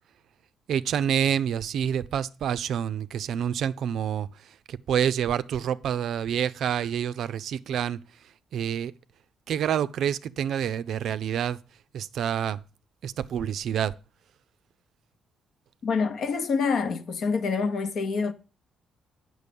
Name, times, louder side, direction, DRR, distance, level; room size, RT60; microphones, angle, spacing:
voice 1, 0.7-8.0 8.5-8.9 9.5-11.6 11.9-12.6 13.0-13.9, right 9 dB, 70° right, 0.4 m, -27 dB
voice 2, 15.8-18.3, left 5 dB, 60° left, 0.9 m, -26 dB
8.3 x 6.3 x 5.2 m
cardioid pair, 90°, 0 cm